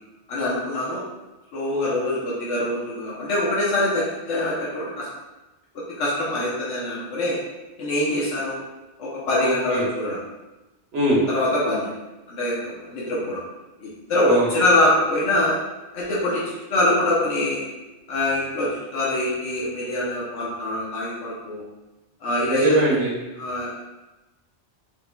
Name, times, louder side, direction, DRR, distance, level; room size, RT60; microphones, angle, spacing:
voice 1, 0.3-1.0 1.5-5.1 6.0-7.4 7.8-8.6 9.0-10.2 11.3-11.9 12.3-13.4 13.8-15.6 15.9-17.7 18.1-21.6 22.2-22.8 23.4-23.8, left 1 dB, 85° left, -7 dB, 1.2 m, -24 dB
voice 2, 9.4-9.8 10.9-11.2 14.3-14.5 22.5-23.1, right 1 dB, 85° right, -4 dB, 1.4 m, -22 dB
4.9 x 3.2 x 2.2 m, 1.0 s
omnidirectional pair, 1.2 m